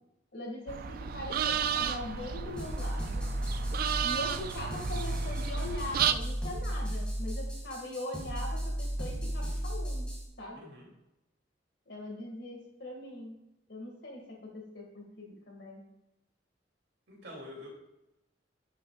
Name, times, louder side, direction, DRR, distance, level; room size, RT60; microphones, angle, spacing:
voice 1, 0.3-3.3 4.0-10.1 10.4-10.7 11.9-13.4 13.7-15.8, left 1 dB, 65° left, 0 dB, 1.9 m, -41 dB
sound 1, 0.7-6.1, right 8 dB, 50° right, 0.3 m, -33 dB
sound 2, 2.6-10.3, equal, 5° left, 2.0 m, -35 dB
voice 2, 10.5-10.9 17.1-17.7, left 1 dB, 75° right, -3 dB, 2.7 m, -46 dB
10.0 x 5.5 x 2.4 m, 0.90 s
head